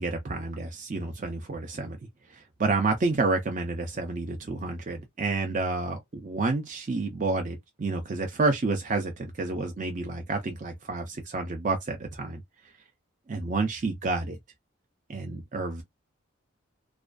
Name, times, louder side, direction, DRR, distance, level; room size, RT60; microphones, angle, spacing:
voice 1, 0.0-2.0 2.3-12.4 13.3-14.4 15.1-15.8, right 3 dB, 35° right, 0.4 m, -29 dB
2.4 x 2.2 x 2.4 m
head